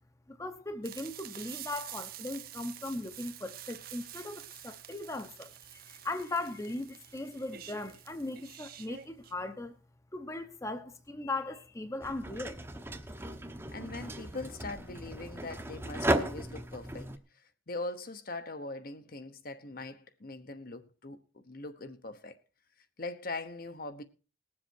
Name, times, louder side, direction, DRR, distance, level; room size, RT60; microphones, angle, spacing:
voice 1, 0.3-9.7 10.1-12.6, left 2 dB, 15° left, 0.9 m, -38 dB
sound 1, 0.8-9.3, right 11 dB, 50° right, 1.0 m, -48 dB
sound 2, 12.0-17.2, right 1 dB, 15° right, 0.9 m, -35 dB
voice 2, 13.7-17.1 17.7-22.4 23.0-24.0, left 2 dB, 50° left, 1.1 m, -41 dB
20.0 x 7.6 x 4.5 m
head